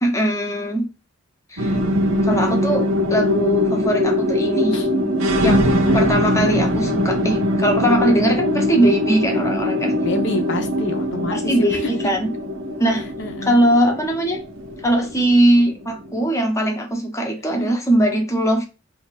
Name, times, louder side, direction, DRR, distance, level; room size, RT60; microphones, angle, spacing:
voice 1, 0.0-0.9 1.5-1.8 2.2-4.8 5.4-5.7 5.9-9.9 11.3-12.3 12.8-13.0 13.4-14.4 14.8-18.7, right 1 dB, 15° left, 0.7 m, -20 dB
sound 1, 1.6-16.2, left 1 dB, 75° right, 0.7 m, -21 dB
voice 2, 10.0-11.9 13.2-13.6 17.5-17.7, left 2 dB, 60° left, 0.7 m, -28 dB
2.8 x 2.4 x 4.0 m
head